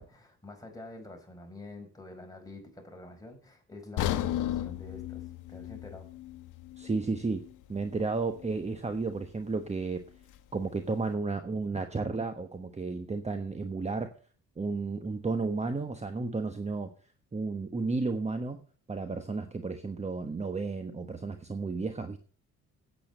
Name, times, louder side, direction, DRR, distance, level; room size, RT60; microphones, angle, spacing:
voice 1, 0.0-6.1, left 2 dB, 10° left, 2 dB, 5.2 m, -47 dB
sound 1, 4.0-8.0 8.4-8.5 9.1-9.2, left 12 dB, 90° left, 0.9 m, -35 dB
voice 2, 6.8-7.4 7.7-10.0 10.5-14.1 14.6-16.9 17.3-18.6 18.9-22.2, right 3 dB, 20° right, 7 dB, 1.2 m, -32 dB
8.7 x 8.7 x 8.1 m, 0.42 s
cardioid pair, 90°, 30 cm